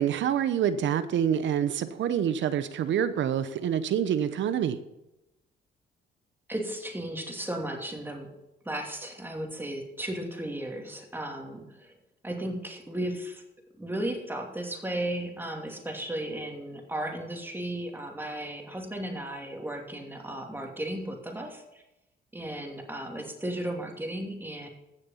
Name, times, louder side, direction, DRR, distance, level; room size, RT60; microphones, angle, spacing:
voice 1, 0.0-4.8, right 9 dB, 70° right, 12 dB, 0.8 m, -27 dB
voice 2, 6.5-8.3 8.6-11.9 12.2-13.4 13.8-21.8 22.3-24.7, right 1 dB, 10° right, 2 dB, 2.7 m, -35 dB
15.0 x 6.7 x 5.7 m, 0.92 s
cardioid pair, 90°, 20 cm